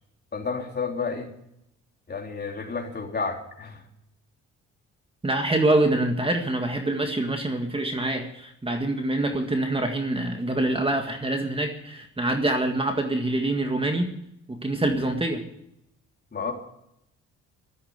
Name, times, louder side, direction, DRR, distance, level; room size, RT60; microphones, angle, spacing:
voice 1, 0.3-1.3 2.1-3.8 16.3-16.5, left 5 dB, 35° left, 1 dB, 3.7 m, -31 dB
voice 2, 5.2-14.1 14.5-15.4, right 2 dB, 20° right, 5 dB, 1.9 m, -25 dB
13.0 x 13.0 x 8.3 m, 0.79 s
cardioid pair, 90°, 30 cm